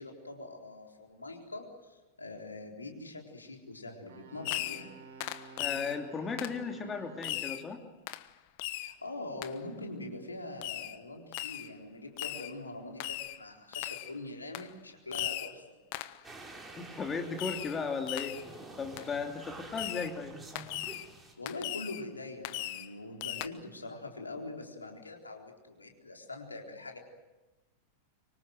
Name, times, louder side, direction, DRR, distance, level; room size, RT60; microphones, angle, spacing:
voice 1, 0.0-4.9 8.7-15.6 21.4-27.0, left 2 dB, 80° left, 2 dB, 4.1 m, -43 dB
Wind instrument woodwind instrument, 4.1-7.8, right 4 dB, 60° right, 4.2 m, -52 dB
Fireworks, 4.4-4.9 5.2-6.0 6.4-6.6 7.2-7.7 8.1-8.3 8.6-9.0 9.4-9.5 10.6-11.0 11.3-11.7 12.2-12.5 13.0-13.4 13.7-14.1 14.5-14.7 15.1-15.6 15.9-16.2 17.4-17.8 18.1-18.5 19.0-19.1 19.8-20.1 20.6-21.1 21.5-22.0 22.4-22.9 23.2-23.5, left 16 dB, 50° left, 1.2 m, -38 dB
voice 2, 5.6-7.8 16.8-18.4 18.8-20.4, left 5 dB, 20° left, 4 dB, 2.8 m, -36 dB
sound 1, 16.2-21.3, right 2 dB, 10° right, 5.0 m, -49 dB
25.0 x 24.5 x 7.9 m, 1.1 s
figure-of-eight pair, 90°, 0 cm